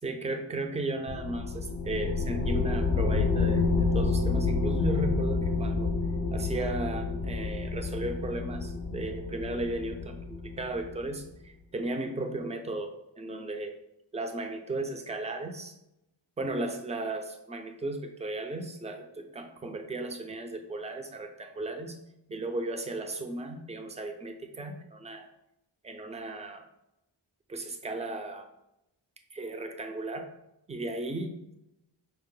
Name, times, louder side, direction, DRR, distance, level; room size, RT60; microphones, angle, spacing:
voice 1, 0.0-5.9 6.3-13.8 14.1-15.7 16.4-22.0 22.3-25.3 25.8-26.6 27.5-28.5 29.3-30.3 30.7-31.5, right 2 dB, 15° right, 5 dB, 0.4 m, -35 dB
sound 1, 1.1-11.1, left 4 dB, 55° left, 0.6 m, -29 dB
5.3 x 2.1 x 3.7 m, 0.87 s
wide cardioid pair, 90°, 45 cm